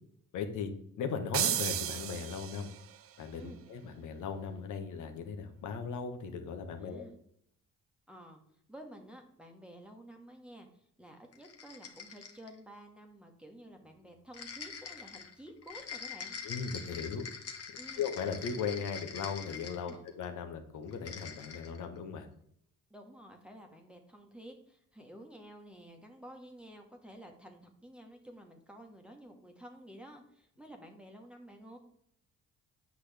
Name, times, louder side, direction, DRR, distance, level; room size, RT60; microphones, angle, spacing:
voice 1, 0.3-0.7 1.0-2.7 3.2-7.1 16.4-17.3 18.0-22.3, left 6 dB, 80° left, 6 dB, 1.1 m, -38 dB
sound 1, 1.3-3.0, right 10 dB, 50° right, 0.5 m, -33 dB
voice 2, 6.8-7.1 8.1-8.4 8.7-16.4 17.8-18.0 19.8-20.1 22.9-31.8, right 1 dB, 5° right, 1 dB, 1.2 m, -51 dB
sound 2, 11.3-12.6 14.3-20.2 20.9-21.8, left 6 dB, 55° left, 1.2 m, -44 dB
8.2 x 6.1 x 3.4 m, 0.69 s
cardioid pair, 90°, 30 cm